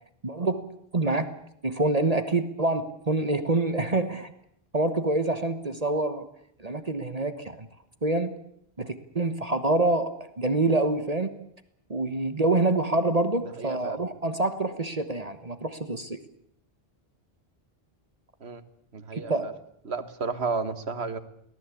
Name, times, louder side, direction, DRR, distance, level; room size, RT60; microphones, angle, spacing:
voice 1, 0.2-0.6 0.9-1.3 1.6-4.3 4.7-6.3 6.6-7.7 8.0-8.4 8.8-11.4 11.9-16.2 19.1-19.4, right 2 dB, 40° right, 10 dB, 1.3 m, -26 dB
voice 2, 13.6-14.0 18.4-18.6 18.9-19.5 19.9-21.2, right 4 dB, 85° right, 11 dB, 1.8 m, -32 dB
24.0 x 18.0 x 8.5 m, 0.71 s
omnidirectional pair, 1.1 m